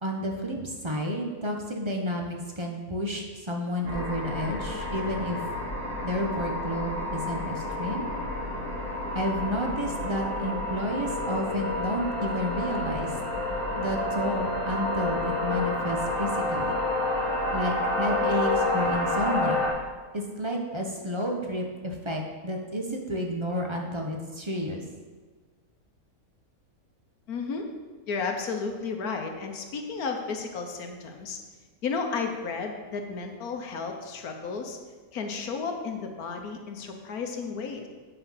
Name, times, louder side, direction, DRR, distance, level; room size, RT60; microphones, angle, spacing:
voice 1, 0.0-5.4 6.0-8.1 9.1-13.1 13.8-16.8 17.5-19.6 20.1-24.8, equal, 20° right, 1 dB, 0.9 m, -31 dB
sound 1, 3.8-19.7, left 1 dB, 75° right, 4.0 m, -29 dB
voice 2, 27.3-27.7 28.1-31.4 31.8-34.8 35.1-37.9, left 4 dB, 80° left, 4 dB, 1.5 m, -33 dB
8.8 x 5.6 x 5.7 m, 1.4 s
omnidirectional pair, 1.5 m